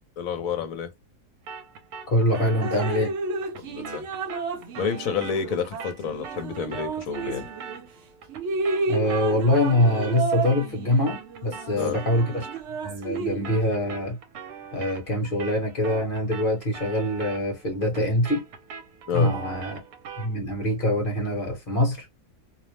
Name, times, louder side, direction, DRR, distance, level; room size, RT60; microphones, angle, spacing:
voice 1, 0.2-0.9 3.6-4.0 4.8-7.5 11.8-12.0 19.1-19.3, left 6 dB, 65° left, 1.1 m, -29 dB
sound 1, 1.5-10.8 11.1-20.4, right 6 dB, 80° right, 1.1 m, -42 dB
voice 2, 2.1-3.1 8.9-12.5 12.8-14.2 14.7-18.4 19.1-19.8 20.2-22.1, left 1 dB, 40° left, 1.1 m, -24 dB
Drip, 2.6-7.9 8.3-13.6, right 4 dB, 60° right, 0.8 m, -32 dB
2.8 x 2.0 x 3.1 m
omnidirectional pair, 1.7 m